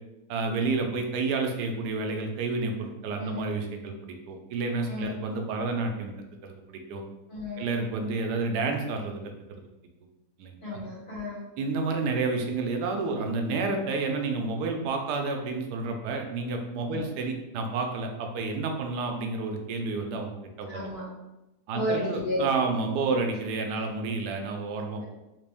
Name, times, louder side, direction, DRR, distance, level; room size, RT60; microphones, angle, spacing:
voice 1, 0.3-6.1 6.4-7.0 7.6-9.6 10.4-10.6 11.6-20.8 21.7-25.0, right 3 dB, 90° right, 3 dB, 1.2 m, -30 dB
voice 2, 3.1-3.5 4.9-5.1 7.3-7.7 10.6-11.4 16.8-17.0 20.7-21.0 21.7-22.8 23.7-23.8, equal, 65° left, -7 dB, 2.1 m, -32 dB
3.7 x 2.5 x 3.4 m, 0.98 s
omnidirectional pair, 1.7 m